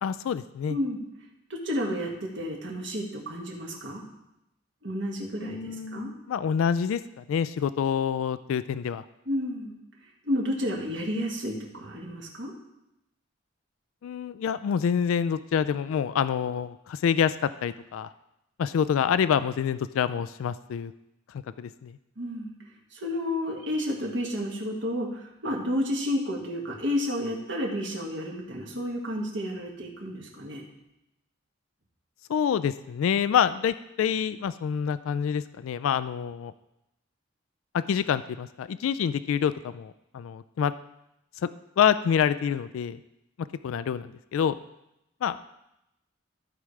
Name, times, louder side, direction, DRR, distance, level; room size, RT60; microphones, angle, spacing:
voice 1, 0.0-0.8 5.4-9.0 14.0-18.1 18.6-20.9 21.3-22.0 32.3-36.5 37.7-40.7 41.4-41.5 41.8-43.0 43.4-44.5 45.2-45.5, left 7 dB, 85° left, 13 dB, 0.3 m, -27 dB
voice 2, 1.5-4.0 4.8-6.1 9.3-9.8 10.2-12.5 22.2-22.5 22.9-30.6, left 1 dB, 60° right, -1 dB, 1.7 m, -31 dB
14.5 x 4.9 x 3.2 m, 0.86 s
head